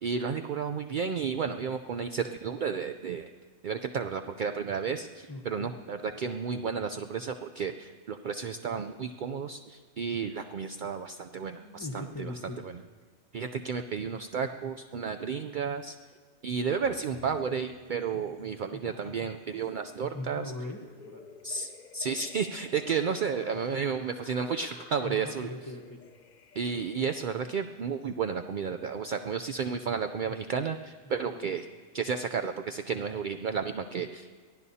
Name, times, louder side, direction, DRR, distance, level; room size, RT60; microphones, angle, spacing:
voice 1, 0.0-3.3 3.6-12.3 12.6-12.8 13.3-16.0 16.4-20.5 21.4-25.5 26.5-31.6 31.9-34.3, right 6 dB, 60° right, 7 dB, 0.5 m, -32 dB
voice 2, 5.3-5.7 11.6-12.6 18.7-19.7 20.1-21.3 25.0-26.2 31.0-31.5, left 1 dB, 15° left, 1 dB, 0.9 m, -41 dB
sound 1, 16.8-18.7 19.1-28.2, left 6 dB, 50° left, 0.6 m, -53 dB
23.0 x 15.5 x 2.8 m, 1.5 s
omnidirectional pair, 1.4 m